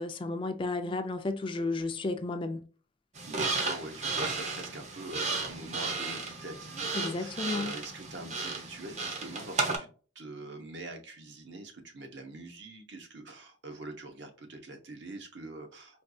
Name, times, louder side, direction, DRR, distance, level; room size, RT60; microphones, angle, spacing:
voice 1, 0.0-2.6 6.9-7.7, left 3 dB, 25° left, 0.3 m, -33 dB
sound 1, 3.1-9.8, right 3 dB, 35° right, 0.6 m, -34 dB
voice 2, 3.3-9.9 10.1-16.0, right 2 dB, 65° right, 0.9 m, -44 dB
4.4 x 2.3 x 2.6 m
head